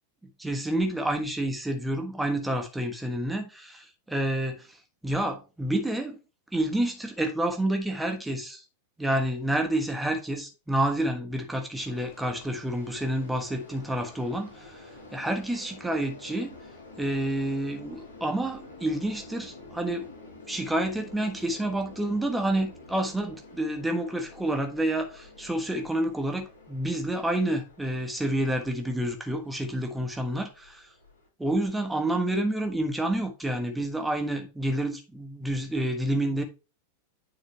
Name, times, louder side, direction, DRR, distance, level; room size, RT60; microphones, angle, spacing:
voice 1, 0.4-4.7 5.0-6.2 6.5-8.6 9.0-14.8 15.1-16.5 17.0-20.1 20.5-30.9 31.4-36.4, right 1 dB, 5° right, 1.3 m, -29 dB
sound 1, 11.7-31.3, left 2 dB, 75° left, 3.1 m, -49 dB
9.4 x 4.1 x 3.2 m
figure-of-eight pair, 90°, 0 cm